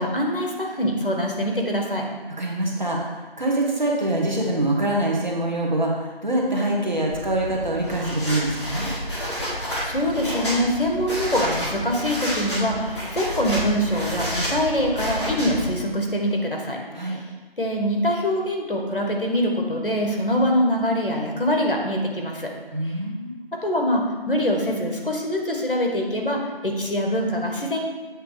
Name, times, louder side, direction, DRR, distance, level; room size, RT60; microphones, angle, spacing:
voice 1, 0.0-2.1 9.8-16.8 17.1-17.2 17.6-22.5 23.6-27.8, equal, 60° left, 1 dB, 1.3 m, -24 dB
voice 2, 2.4-8.9 16.9-17.2 22.7-23.3, right 1 dB, 50° right, -2 dB, 1.2 m, -24 dB
sound 1, 7.1-15.7, equal, 30° left, 1.5 m, -30 dB
8.1 x 3.1 x 4.9 m, 1.3 s
figure-of-eight pair, 175°, 30 cm